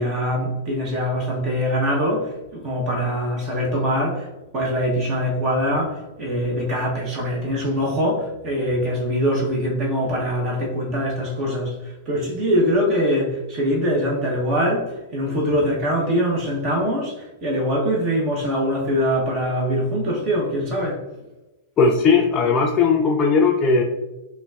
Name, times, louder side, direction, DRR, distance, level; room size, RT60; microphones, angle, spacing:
voice 1, 0.0-4.3 4.5-21.0, equal, 40° right, -2 dB, 0.8 m, -23 dB
voice 2, 21.8-23.8, left 4 dB, 30° left, 0 dB, 0.4 m, -17 dB
3.9 x 2.2 x 2.3 m, 1.0 s
hypercardioid pair, 105°, 0 cm